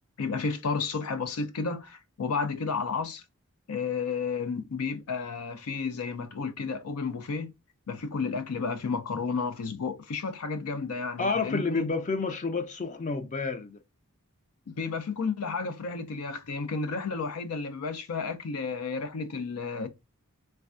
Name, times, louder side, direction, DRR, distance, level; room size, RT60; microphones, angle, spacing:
voice 1, 0.2-3.2 3.7-7.5 7.9-11.9 14.8-19.9, left 4 dB, 90° left, 0.5 m, -32 dB
voice 2, 11.2-13.8, left 4 dB, 35° left, 0.4 m, -29 dB
3.3 x 2.2 x 2.4 m
head